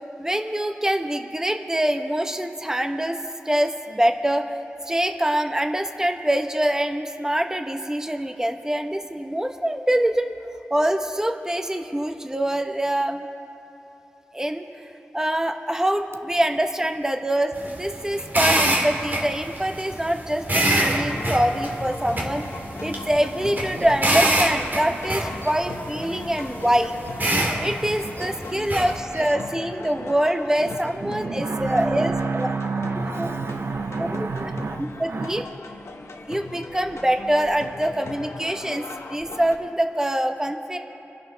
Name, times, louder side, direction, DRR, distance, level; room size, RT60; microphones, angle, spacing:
voice 1, 0.2-3.2 3.4-4.4 4.9-10.3 10.7-13.3 14.3-14.6 15.1-22.4 22.8-26.9 27.6-32.5 33.1-33.3 34.0-34.5 34.8-35.4 36.3-40.8, right 1 dB, 10° right, 5 dB, 1.1 m, -24 dB
sound 1, 17.5-29.0, right 1 dB, 45° right, 2.4 m, -26 dB
sound 2, 21.1-39.6, left 3 dB, 80° left, 1.0 m, -38 dB
voice 2, 23.0-24.2 24.9-25.8 26.5-26.6 26.9-29.5 30.0-30.2 30.6-35.4, right 4 dB, 65° right, 8 dB, 0.6 m, -32 dB
30.0 x 11.5 x 3.4 m, 3.0 s
cardioid pair, 50°, 5 cm